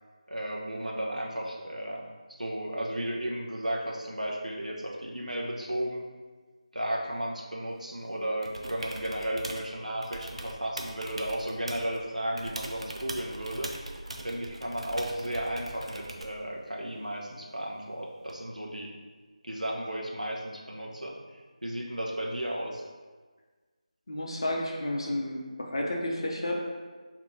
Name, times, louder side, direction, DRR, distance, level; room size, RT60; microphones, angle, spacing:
voice 1, 0.3-2.1 2.4-6.1 6.7-13.7 14.2-19.0 19.4-22.8, right 1 dB, 85° right, -1 dB, 0.7 m, -34 dB
sound 1, 8.4-9.7 10.0-12.0 12.4-16.4 18.3-18.4, right 1 dB, 50° right, 0.4 m, -41 dB
voice 2, 24.1-26.6, left 1 dB, 45° left, -1 dB, 0.6 m, -31 dB
4.8 x 2.7 x 2.6 m, 1.4 s
figure-of-eight pair, 165°, 4 cm